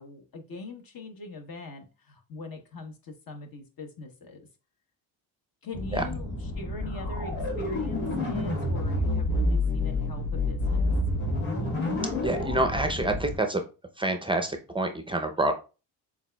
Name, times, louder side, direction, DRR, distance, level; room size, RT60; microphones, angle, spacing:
voice 1, 0.0-4.4 5.6-11.0, left 3 dB, 50° left, 4 dB, 1.0 m, -42 dB
sound 1, 5.7-13.3, left 2 dB, 85° left, 1.4 m, -28 dB
voice 2, 12.2-13.6 14.0-15.5, right 1 dB, 10° right, 6 dB, 0.5 m, -27 dB
7.1 x 2.4 x 2.2 m, 0.33 s
supercardioid pair, 70°, 45 cm